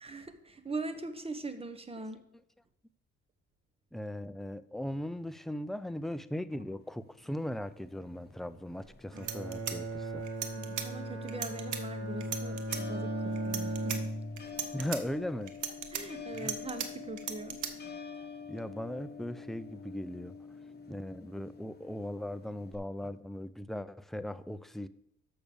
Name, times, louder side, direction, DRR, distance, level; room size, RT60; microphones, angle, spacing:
voice 1, 0.0-2.2 10.6-14.1 15.9-17.6, right 3 dB, 20° right, 9 dB, 1.1 m, -41 dB
voice 2, 3.9-10.3 14.7-15.6 16.3-16.5 18.5-20.4 20.9-24.9, left 1 dB, ahead, 12 dB, 0.4 m, -38 dB
sound 1, 6.8-22.7, left 6 dB, 35° left, 1.6 m, -48 dB
sound 2, 8.8-8.9 9.2-10.9 11.3-11.8 12.2-12.8 13.4-14.0 14.4-15.0 15.5-16.9 17.2-17.7, right 9 dB, 75° right, 1.2 m, -37 dB
Bowed string instrument, 9.1-14.6, right 1 dB, 50° right, 2.2 m, -37 dB
6.7 x 6.2 x 7.1 m, 0.76 s
cardioid pair, 90°, 30 cm